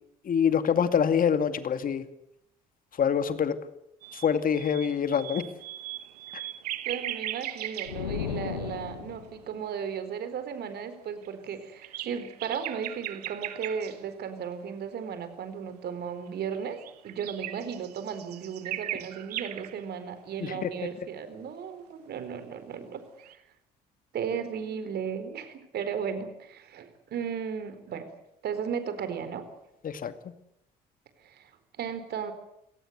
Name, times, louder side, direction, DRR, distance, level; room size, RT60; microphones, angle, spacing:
voice 1, 0.2-2.0 3.0-3.6 4.1-5.5 6.3-6.4 20.4-20.7 29.8-30.1, left 7 dB, 45° left, 11 dB, 2.3 m, -25 dB
sound 1, 4.0-8.8 9.1-9.6 10.3-10.4 11.2-14.0 16.3-19.9 23.2-23.3, right 13 dB, 85° right, 1.3 m, -38 dB
voice 2, 6.8-23.0 24.1-28.1 28.4-29.5 31.2-31.5 31.8-32.3, right 7 dB, 55° right, 11 dB, 4.3 m, -35 dB
sound 2, 7.8-9.4, left 8 dB, 85° left, 1.9 m, -35 dB
27.5 x 18.5 x 8.1 m, 0.79 s
hypercardioid pair, 60°, 20 cm